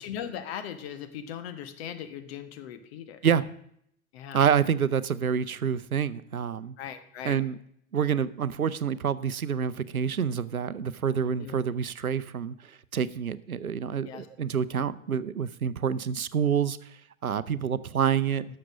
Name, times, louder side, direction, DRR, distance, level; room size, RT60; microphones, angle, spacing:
voice 1, 0.0-3.2 4.1-4.4 6.8-7.4 11.4-11.6 14.0-14.3, left 9 dB, 45° left, 9 dB, 1.2 m, -39 dB
voice 2, 4.3-6.8 7.2-7.6 7.9-16.8 17.2-18.5, right 7 dB, 85° right, 17 dB, 0.6 m, -27 dB
12.0 x 6.8 x 6.2 m, 0.70 s
figure-of-eight pair, 95°, 42 cm